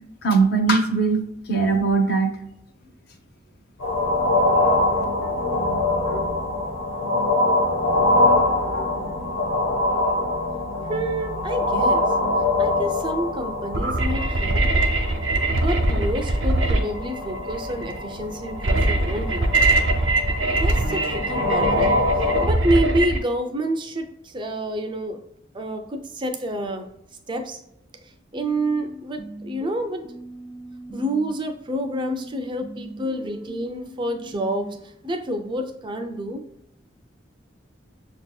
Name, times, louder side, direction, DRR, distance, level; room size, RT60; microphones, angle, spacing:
voice 1, 0.2-2.3, right 4 dB, 55° left, 5 dB, 0.7 m, -20 dB
sound 1, 3.8-22.5, left 2 dB, 85° left, 1.4 m, -24 dB
voice 2, 10.9-12.1 12.6-14.7 15.6-19.5 20.6-25.2 25.5-26.9 27.3-27.6 28.1-30.0 30.9-36.4, right 1 dB, 25° right, 5 dB, 0.4 m, -28 dB
sound 2, 13.7-23.2, right 2 dB, 80° right, 0.7 m, -22 dB
sound 3, 28.3-31.3 31.7-34.8, equal, 20° left, 0.7 m, -40 dB
6.5 x 2.7 x 2.3 m, 0.80 s
head